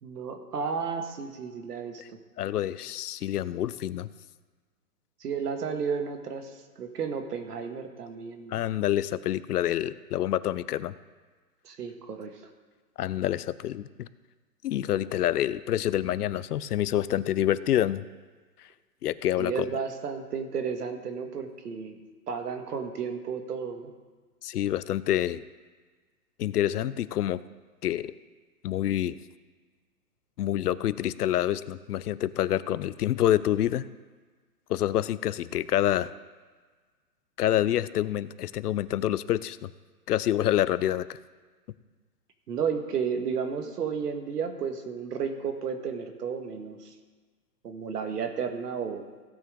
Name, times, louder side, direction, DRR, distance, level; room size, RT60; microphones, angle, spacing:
voice 1, 0.0-2.2 5.2-8.6 11.6-12.4 19.4-22.0 22.3-23.9 42.5-46.9 47.6-49.0, right 6 dB, 75° right, 6 dB, 1.7 m, -33 dB
voice 2, 2.4-4.1 8.5-10.9 13.0-14.1 14.6-18.0 19.0-19.7 24.4-25.4 26.4-27.4 27.8-28.1 28.6-29.2 30.4-33.9 34.7-36.1 37.4-39.7 40.1-41.2, left 12 dB, 70° left, 16 dB, 0.6 m, -27 dB
16.5 x 8.7 x 3.7 m, 1.4 s
hypercardioid pair, 170°, 47 cm